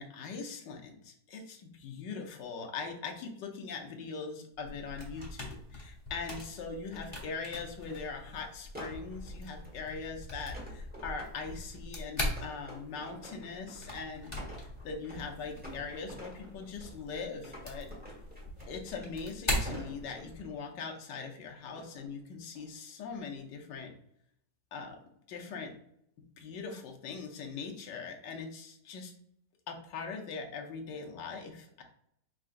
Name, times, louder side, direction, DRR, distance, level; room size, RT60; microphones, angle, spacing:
voice 1, 0.0-17.9 18.7-23.9 24.7-25.0 25.3-25.7 26.4-29.1 29.7-31.8, left 5 dB, 80° left, 2 dB, 1.4 m, -41 dB
sound 1, 4.6-20.5, left 1 dB, 20° left, 0.8 m, -41 dB
sound 2, 7.8-8.0 8.7-9.8 10.5-11.7 12.4-13.9 14.2-15.3 15.6-17.0 17.4-19.2 19.6-20.6 21.7-22.1 22.5-22.9, equal, 5° right, 1.2 m, -48 dB
4.9 x 3.7 x 2.5 m, 0.71 s
omnidirectional pair, 1.9 m